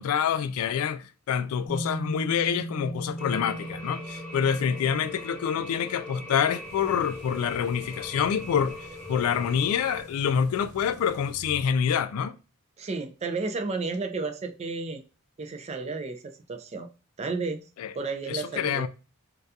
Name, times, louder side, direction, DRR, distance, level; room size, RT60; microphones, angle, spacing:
voice 1, 0.0-8.8 9.1-12.3 17.8-17.9 18.3-18.9, left 7 dB, 85° left, 0.3 m, -27 dB
sound 1, 1.6-11.1, right 1 dB, 55° left, 0.6 m, -41 dB
sound 2, 3.2-10.0, left 1 dB, 5° left, 0.8 m, -41 dB
sound 3, 6.6-11.6, equal, 55° right, 0.9 m, -48 dB
voice 2, 12.8-15.0 15.4-16.9 17.2-17.6 17.9-18.9, right 3 dB, 30° right, 0.3 m, -32 dB
2.3 x 2.2 x 2.6 m
head